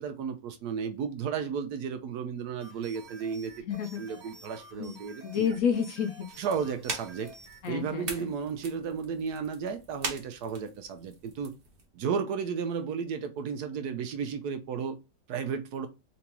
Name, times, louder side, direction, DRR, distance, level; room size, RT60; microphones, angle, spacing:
voice 1, 0.0-3.5 4.0-5.5 6.4-7.3 7.7-11.5 11.9-15.0 15.3-15.9, right 6 dB, 70° right, 1.1 m, -33 dB
sound 1, 2.6-7.6, right 2 dB, 25° right, 1.4 m, -50 dB
voice 2, 3.7-4.0 4.8-5.0 5.2-6.3 7.6-8.3, left 7 dB, 70° left, 0.8 m, -30 dB
sound 2, 6.3-11.9, right 4 dB, 40° right, 0.9 m, -42 dB
3.8 x 3.5 x 2.9 m
omnidirectional pair, 1.9 m